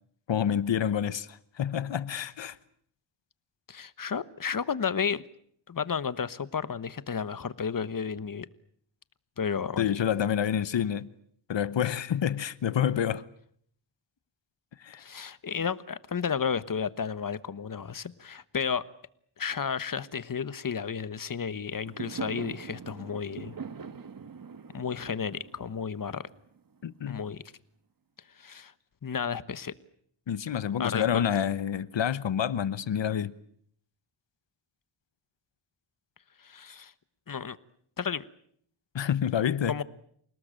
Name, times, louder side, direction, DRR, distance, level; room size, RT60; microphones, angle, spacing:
voice 1, 0.3-2.6 9.8-11.1 11.5-13.2 14.8-15.0 26.8-27.2 30.3-33.3 38.9-39.7, left 9 dB, 70° left, 1.1 m, -28 dB
voice 2, 3.7-5.2 5.7-8.5 9.4-9.9 15.0-18.8 19.4-23.5 24.7-26.3 27.1-27.4 28.4-28.7 29.0-29.7 30.8-31.1 36.4-36.9 37.3-37.6 38.0-38.2 39.7-39.8, left 6 dB, 45° left, 1.2 m, -32 dB
Fireworks, 21.8-27.1, right 6 dB, 45° right, 1.4 m, -42 dB
28.5 x 19.0 x 9.0 m
wide cardioid pair, 100°, 45 cm